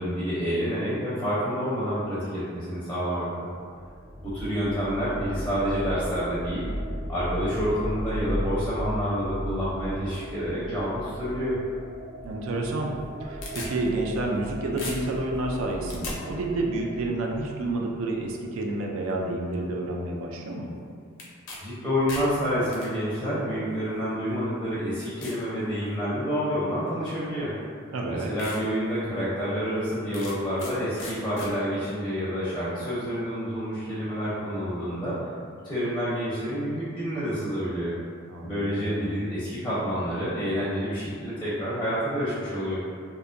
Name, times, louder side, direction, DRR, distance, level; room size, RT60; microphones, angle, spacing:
voice 1, 0.0-3.5 4.2-6.7 7.1-11.6 21.6-27.5 28.1-37.9 38.4-42.8, equal, 10° left, -11 dB, 0.5 m, -28 dB
sound 1, 3.8-18.4, equal, 30° right, 0.7 m, -36 dB
voice 2, 12.2-12.9 13.2-20.7 27.9-28.3 38.3-39.1, right 2 dB, 70° right, 0 dB, 0.4 m, -29 dB
sound 2, 12.9-14.5 14.8-16.2 21.2-21.6 21.9-22.9 23.8-23.9 24.5-24.6 25.2-25.4 25.9-26.3 27.4-27.5 28.0-28.1 28.4-28.6 29.0-29.1 30.1-30.7 31.0-31.5, left 2 dB, 65° left, 0.5 m, -38 dB
2.5 x 2.1 x 2.5 m, 2.2 s
head